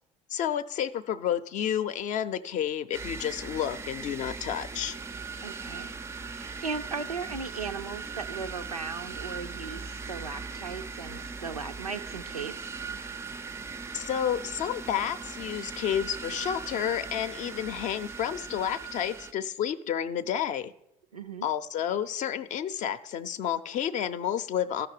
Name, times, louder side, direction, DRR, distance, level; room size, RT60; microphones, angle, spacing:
voice 1, 0.3-5.0 13.9-20.7 21.4-24.9, left 9 dB, 45° left, 12 dB, 0.6 m, -30 dB
sound 1, 2.9-19.3, right 4 dB, 15° right, 0.4 m, -39 dB
voice 2, 5.4-12.7 21.1-21.5, right 5 dB, 85° right, 8 dB, 0.5 m, -37 dB
14.0 x 5.9 x 4.9 m, 0.79 s
figure-of-eight pair, 60°, 19 cm